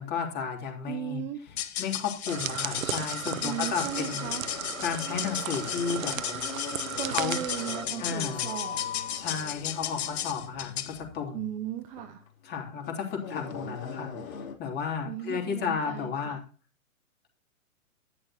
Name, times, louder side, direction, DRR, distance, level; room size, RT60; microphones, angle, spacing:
voice 1, 0.0-1.2 1.8-4.3 4.8-6.2 7.0-7.4 8.0-8.4 9.1-11.4 12.4-14.1 14.6-16.4, left 6 dB, 25° left, 2 dB, 3.2 m, -33 dB
voice 2, 0.9-1.4 3.4-4.4 7.0-8.8 11.3-12.2 15.0-16.4, right 12 dB, 20° right, 7 dB, 0.6 m, -36 dB
sound 1, 1.5-11.0, left 11 dB, 45° left, 1.9 m, -35 dB
sound 2, 2.3-7.9, right 10 dB, 65° right, 1.0 m, -36 dB
sound 3, 3.5-14.5, left 6 dB, 70° left, 3.4 m, -41 dB
11.0 x 11.0 x 3.0 m, 0.34 s
hypercardioid pair, 130°, 42 cm